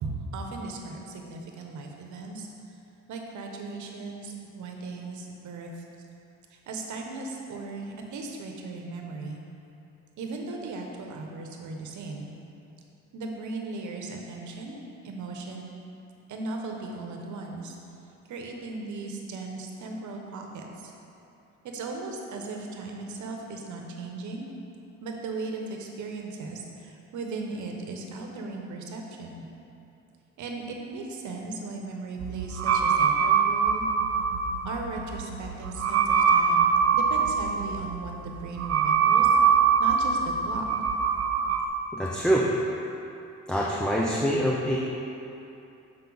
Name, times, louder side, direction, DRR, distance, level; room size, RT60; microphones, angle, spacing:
voice 1, 0.0-2.5 3.1-5.8 6.5-9.4 10.2-12.3 13.1-14.8 15.0-15.7 16.3-17.8 18.3-20.9 21.6-24.5 25.0-29.4 30.4-33.8 34.6-39.3 39.8-40.7, right 3 dB, 75° right, 1 dB, 1.0 m, -37 dB
sound 1, 32.2-41.7, right 6 dB, 55° right, 0.6 m, -23 dB
voice 2, 41.9-42.5 43.5-44.8, equal, 5° left, -4 dB, 0.6 m, -25 dB
7.2 x 5.3 x 3.9 m, 2.7 s
cardioid pair, 90°, 30 cm